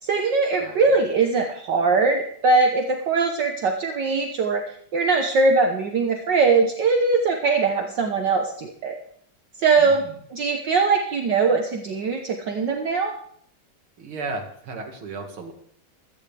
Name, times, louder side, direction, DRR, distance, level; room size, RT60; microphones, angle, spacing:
voice 1, 0.0-4.6 4.9-8.9 9.6-10.0 10.3-13.1, right 4 dB, 60° right, 2 dB, 1.7 m, -21 dB
voice 2, 0.6-1.0 9.8-10.1 14.0-15.5, right 3 dB, 80° right, 3 dB, 2.8 m, -35 dB
16.5 x 14.5 x 3.4 m, 0.63 s
omnidirectional pair, 2.3 m